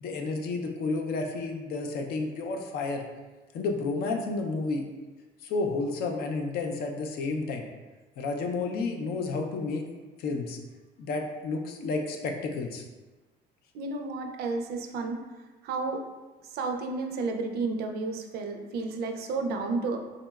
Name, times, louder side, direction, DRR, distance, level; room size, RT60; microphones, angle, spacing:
voice 1, 0.0-3.0 3.5-4.9 5.4-7.6 8.2-9.9 10.2-10.6 11.0-12.8, left 3 dB, 65° left, 3 dB, 0.4 m, -31 dB
voice 2, 13.7-15.2 15.6-16.0 16.5-20.0, right 3 dB, 70° right, 4 dB, 0.4 m, -31 dB
3.7 x 2.0 x 2.2 m, 1.2 s
cardioid pair, 110°, 17 cm